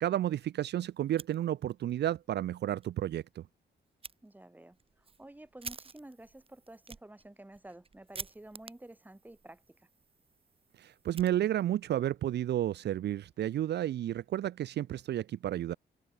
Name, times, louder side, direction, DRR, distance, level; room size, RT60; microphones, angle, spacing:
voice 1, 0.0-3.4 10.8-15.7, right 12 dB, 65° right, 0.5 m, -32 dB
Fire, 1.0-1.9 2.3-2.4 2.8-2.9 4.0-4.2 4.7-11.9, right 4 dB, 30° right, 2.9 m, -49 dB
voice 2, 4.2-9.9, right 1 dB, 10° right, 3.0 m, -51 dB
open air
cardioid pair, 105°, 19 cm